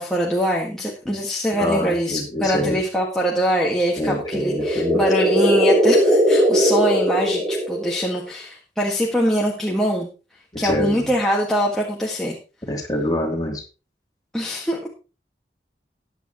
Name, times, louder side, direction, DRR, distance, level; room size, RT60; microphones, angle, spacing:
voice 1, 0.0-10.1 10.6-12.4 14.3-14.9, equal, 5° left, -4 dB, 1.7 m, -23 dB
voice 2, 1.5-2.8 4.0-5.0 10.5-11.1 12.7-13.6, left 1 dB, 20° left, 0 dB, 2.9 m, -25 dB
sound 1, 3.9-8.2, right 1 dB, 20° right, 3.0 m, -19 dB
14.5 x 9.8 x 3.0 m, 0.32 s
head